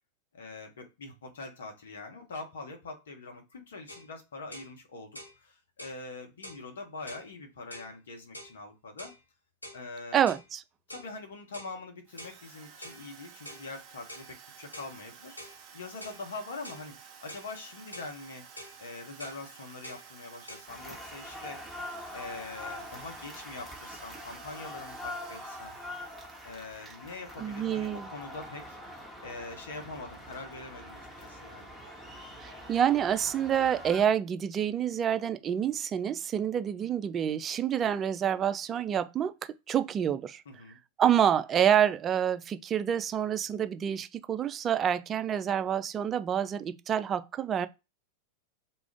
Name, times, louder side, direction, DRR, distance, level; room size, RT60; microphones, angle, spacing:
voice 1, 0.3-9.1 9.7-10.2 10.9-15.4 15.7-18.5 18.8-21.6 22.1-25.8 26.4-31.7 40.4-40.8, left 3 dB, 65° left, 1.0 m, -43 dB
sound 1, 3.9-4.1 4.5-4.7 5.1-5.4 5.8-6.0 6.4-6.6 7.1-7.3 7.7-7.9 8.3-8.6 9.0-9.2 9.6-9.8 10.3-10.5 10.9-11.1 11.5-11.7 12.2-12.4 12.8-13.0 13.4-13.7 14.1-14.3 14.7-14.9 15.4-15.6 16.0-16.2 16.6-16.9 17.3-17.5 17.9-18.1 18.6-18.8 19.2-19.4 19.8-20.0 20.5-20.6, left 1 dB, 85° left, 0.6 m, -46 dB
voice 2, 10.1-10.6 27.4-28.1 32.4-39.3 39.7-40.4 41.0-47.7, right 9 dB, 25° right, 0.3 m, -27 dB
Drill, 12.1-27.3, right 7 dB, 40° right, 0.7 m, -52 dB
sound 2, 20.7-34.1, left 1 dB, 5° left, 1.1 m, -44 dB
2.4 x 2.3 x 3.4 m
figure-of-eight pair, 95°, 0 cm